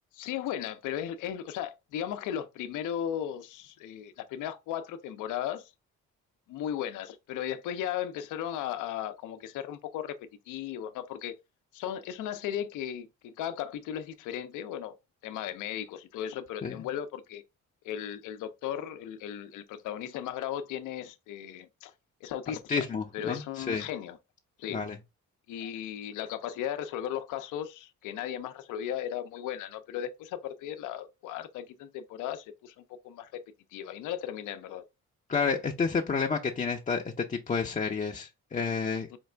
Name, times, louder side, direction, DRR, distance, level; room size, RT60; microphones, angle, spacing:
voice 1, 0.1-5.7 6.5-10.2 10.5-11.3 11.7-15.0 15.2-17.4 17.8-21.9 22.2-22.9 23.1-24.2 24.6-24.8 25.5-33.4 33.7-34.8 39.1-39.2, left 10 dB, 90° left, 0.5 m, -36 dB
voice 2, 22.5-23.9 24.7-25.0 35.3-39.2, left 5 dB, 25° left, 0.5 m, -30 dB
4.5 x 2.4 x 3.2 m
cardioid pair, 90°, 30 cm